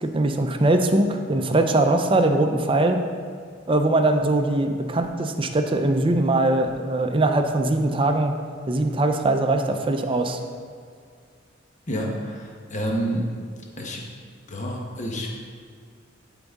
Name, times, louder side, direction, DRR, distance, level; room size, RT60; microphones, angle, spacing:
voice 1, 0.0-3.0 3.7-8.3 8.7-10.4, right 2 dB, 25° right, 5 dB, 0.5 m, -21 dB
voice 2, 11.9-13.3 13.8-14.1 14.5-15.3, equal, 40° left, 0 dB, 1.0 m, -28 dB
12.0 x 3.9 x 3.6 m, 2.1 s
head